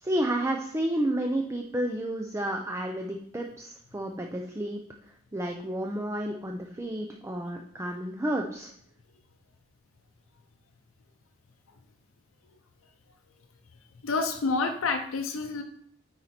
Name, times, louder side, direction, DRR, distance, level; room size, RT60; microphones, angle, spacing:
voice 1, 0.0-4.8 5.3-8.7, right 1 dB, 15° right, 2 dB, 0.5 m, -31 dB
voice 2, 14.0-15.6, left 4 dB, 85° left, 5 dB, 0.6 m, -28 dB
9.1 x 4.3 x 4.2 m, 0.68 s
head